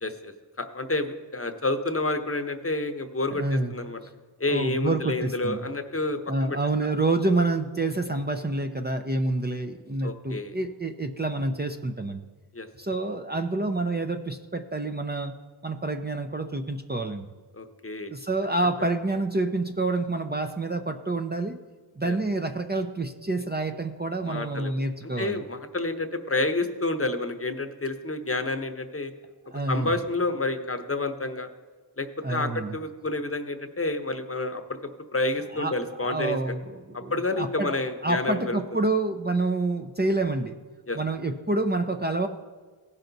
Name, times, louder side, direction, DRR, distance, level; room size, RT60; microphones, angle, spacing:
voice 1, 0.0-4.0 4.4-6.6 10.0-10.5 12.5-12.7 17.5-18.1 22.0-22.2 24.2-24.7 25.2-29.1 29.7-31.5 32.0-34.8 35.1-36.4 36.9-38.6 40.9-41.0, left 2 dB, 30° left, 7 dB, 0.9 m, -29 dB
voice 2, 3.4-3.7 4.5-5.6 6.3-12.2 12.8-15.3 15.6-17.3 18.1-21.6 22.0-25.4 29.5-29.9 32.2-32.7 35.5-37.8 38.0-40.5 41.0-42.3, right 2 dB, 20° right, 6 dB, 0.6 m, -28 dB
16.5 x 5.7 x 4.0 m, 1.4 s
cardioid pair, 50°, 44 cm